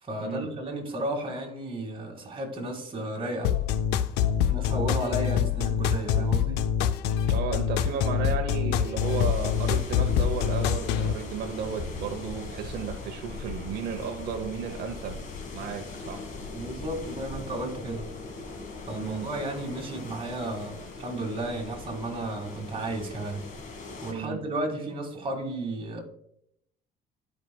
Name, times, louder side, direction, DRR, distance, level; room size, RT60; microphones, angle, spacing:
voice 1, 0.0-3.6 4.3-6.6 16.5-18.1 18.9-23.4 24.0-26.0, right 1 dB, 30° right, 2.1 m, -33 dB
sound 1, 3.4-11.1, left 9 dB, 85° left, 0.5 m, -25 dB
voice 2, 7.3-15.2 15.5-16.2 18.9-19.3 24.1-24.4, right 6 dB, 75° right, 0.9 m, -34 dB
sound 2, 9.0-24.1, left 3 dB, 50° left, 1.8 m, -40 dB
13.0 x 5.0 x 2.3 m
cardioid pair, 110°, 17 cm